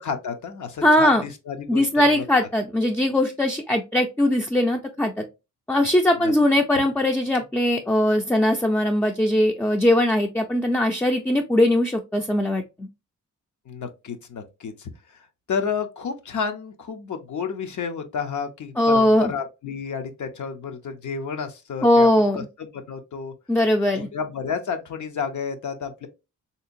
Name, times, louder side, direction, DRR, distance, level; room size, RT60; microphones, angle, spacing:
voice 1, 0.0-2.2 6.2-6.3 13.7-14.9 15.1-22.1 22.3-23.3 23.9-26.1, left 6 dB, 65° left, 0.6 m, -31 dB
voice 2, 0.8-1.2 1.7-5.1 5.7-12.9 18.8-19.3 21.8-22.5 23.5-24.1, left 1 dB, 5° left, 0.3 m, -20 dB
3.6 x 2.8 x 2.5 m
wide cardioid pair, 105°, 32 cm